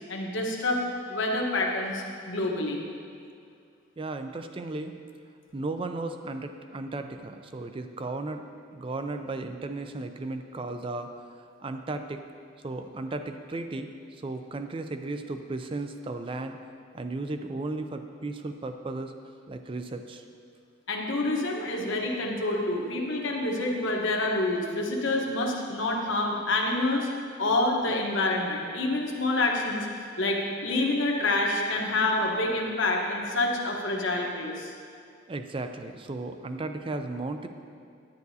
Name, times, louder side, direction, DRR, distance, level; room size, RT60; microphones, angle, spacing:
voice 1, 0.1-0.8 1.1-2.8 20.9-27.1 27.4-34.7, left 2 dB, 70° left, 0 dB, 1.1 m, -27 dB
voice 2, 4.0-5.0 5.5-8.4 8.7-12.2 12.6-16.6 16.9-19.1 19.5-20.2 35.3-37.5, right 2 dB, 25° right, 7 dB, 0.4 m, -35 dB
10.5 x 9.2 x 2.7 m, 2.3 s
head